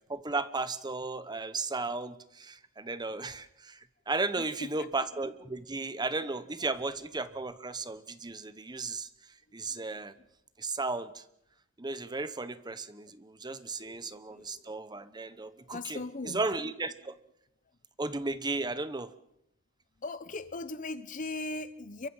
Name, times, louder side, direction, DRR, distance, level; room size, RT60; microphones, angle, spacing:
voice 1, 0.1-9.1 9.5-10.1 10.6-11.2 11.8-16.0 16.3-17.1 18.0-19.1, right 3 dB, 20° right, 1.0 m, -35 dB
voice 2, 4.4-4.9 5.4-5.6 6.6-6.7 9.7-9.9 10.2-10.3 13.7-14.8 15.3-16.4 20.0-22.1, left 2 dB, 40° left, 0.8 m, -40 dB
28.0 x 23.5 x 5.6 m
head